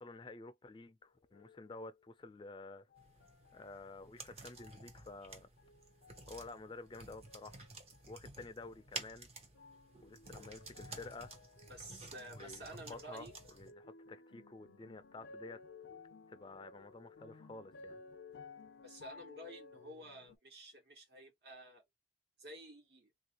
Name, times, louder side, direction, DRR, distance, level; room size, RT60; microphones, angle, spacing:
voice 1, 0.0-2.9 3.5-5.5 6.3-7.7 8.1-9.3 10.0-11.3 12.3-12.6 12.9-15.6 16.3-18.0, left 3 dB, 25° left, 0.4 m, -51 dB
sound 1, 1.3-2.3 2.9-3.9 4.5-5.2 5.6-6.9 7.3-8.1 8.7-9.2 9.5-20.4, left 4 dB, 90° left, 0.5 m, -57 dB
sound 2, 3.0-13.7, right 3 dB, 35° right, 0.7 m, -52 dB
voice 2, 11.7-13.4 18.8-21.8 22.4-23.1, right 1 dB, 65° right, 1.4 m, -51 dB
3.2 x 2.6 x 2.8 m
head